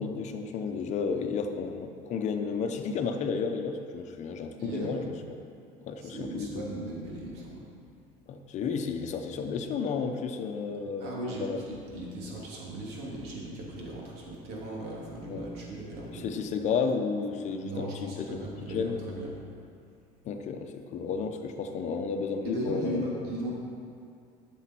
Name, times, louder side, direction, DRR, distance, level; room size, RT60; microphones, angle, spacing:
voice 1, 0.0-5.1 5.8-6.6 8.3-11.6 15.3-15.5 16.1-19.0 20.2-23.3, left 5 dB, 45° left, 5 dB, 0.9 m, -32 dB
voice 2, 4.6-4.9 6.0-7.6 11.0-16.3 17.6-19.3 22.4-23.5, right 1 dB, 80° right, -4 dB, 2.8 m, -37 dB
12.5 x 7.2 x 4.5 m, 2.3 s
cardioid pair, 155°, 16 cm